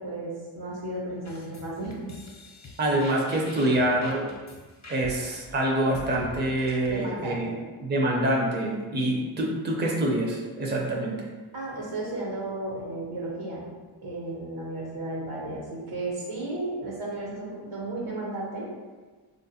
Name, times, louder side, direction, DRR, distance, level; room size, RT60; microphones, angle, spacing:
voice 1, 0.0-2.0 6.8-7.6 11.5-13.6 14.0-18.7, right 2 dB, 75° right, -4 dB, 1.2 m, -34 dB
sound 1, 1.3-6.9, left 2 dB, 35° left, 0.8 m, -45 dB
voice 2, 2.8-4.2 4.9-7.5 7.8-11.2, right 1 dB, 20° right, -1 dB, 0.7 m, -26 dB
3.5 x 2.5 x 2.8 m, 1.3 s
cardioid pair, 45°, 50 cm